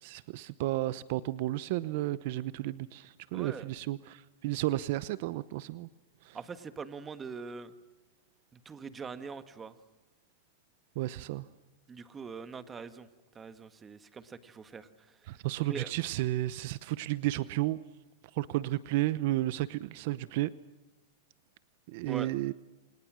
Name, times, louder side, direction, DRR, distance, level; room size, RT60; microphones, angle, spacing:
voice 1, 0.0-5.9 6.2-6.4 11.0-11.5 15.3-17.8 18.3-20.5 21.9-22.5, right 16 dB, 55° right, 16 dB, 0.8 m, -32 dB
voice 2, 3.3-3.7 6.3-7.7 8.5-9.7 11.9-13.1 13.3-15.2 15.7-15.9 22.1-22.3, right 5 dB, 15° right, 11 dB, 1.6 m, -43 dB
29.0 x 26.0 x 6.3 m, 1.1 s
supercardioid pair, 140°, 0 cm